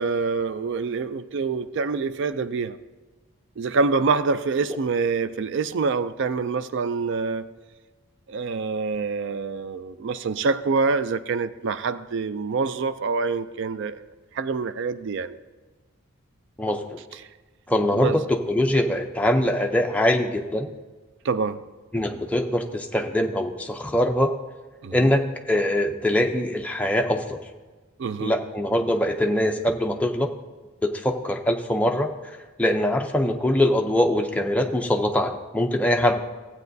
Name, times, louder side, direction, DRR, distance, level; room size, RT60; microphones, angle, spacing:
voice 1, 0.0-2.8 3.6-7.5 8.3-14.0 14.3-15.4 17.1-17.3 17.9-18.2 21.2-21.6 24.8-25.1 28.0-28.3, right 4 dB, 55° right, 0.3 m, -26 dB
voice 2, 16.6-17.0 17.7-20.7 21.9-24.3 24.9-27.4 28.2-30.3 30.8-32.1 32.6-36.2, left 1 dB, 5° left, 0.5 m, -23 dB
15.0 x 8.4 x 2.6 m
head